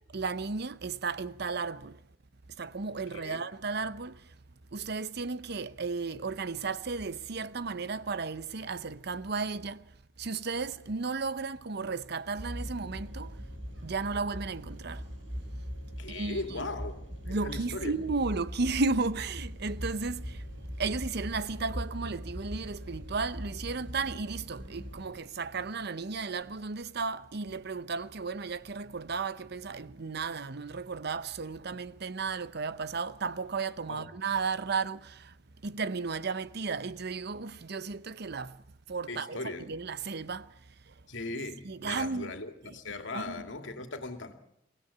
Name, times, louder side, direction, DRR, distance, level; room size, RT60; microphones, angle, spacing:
voice 1, 0.1-2.0 2.6-4.4 4.7-9.9 10.2-13.4 13.8-15.0 16.1-16.7 17.3-20.4 20.8-35.3 35.6-40.9 41.6-42.3 42.6-43.4, right 4 dB, 60° right, 0.8 m, -34 dB
voice 2, 3.1-3.4 16.0-17.0 17.3-17.9 33.9-34.1 39.1-39.7 41.1-44.3, left 2 dB, 85° left, 2.4 m, -38 dB
sound 1, 12.3-25.1, equal, 75° right, 6.0 m, -41 dB
24.0 x 16.5 x 8.5 m
head